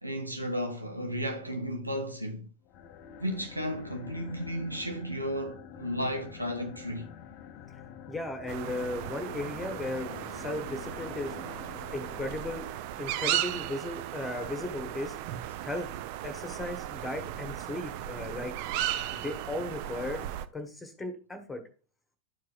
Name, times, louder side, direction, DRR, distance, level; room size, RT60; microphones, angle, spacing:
voice 1, 0.0-2.5 3.2-7.1, equal, 85° right, 0.7 m, -34 dB
sound 1, 2.7-13.1, left 8 dB, 40° left, 0.6 m, -47 dB
voice 2, 8.1-11.3 11.9-12.7 13.0-15.2 15.6-15.9 16.2-18.5 19.1-20.2 20.5-21.6, left 2 dB, 10° left, 1.4 m, -36 dB
sound 2, 8.5-20.4, right 12 dB, 45° right, 0.5 m, -36 dB
11.5 x 4.7 x 2.4 m
figure-of-eight pair, 90°, 0 cm